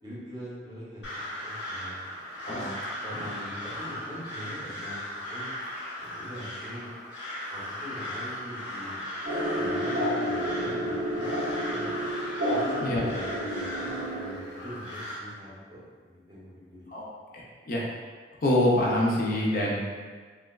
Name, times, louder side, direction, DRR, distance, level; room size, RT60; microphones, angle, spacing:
voice 1, 0.0-1.0 1.4-2.0 2.4-2.7 3.0-5.0 5.3-5.5 6.0-6.9 7.5-9.0 9.5-11.4 11.7-11.9 12.4-16.9, equal, 25° right, -7 dB, 0.6 m, -42 dB
Crow, 1.0-15.2, left 1 dB, 85° left, 0.8 m, -37 dB
sound 1, 9.2-14.8, equal, 85° right, 0.5 m, -30 dB
voice 2, 17.3-17.9 18.4-19.9, left 1 dB, 50° left, -4 dB, 0.5 m, -25 dB
3.2 x 2.2 x 2.2 m, 1.5 s
head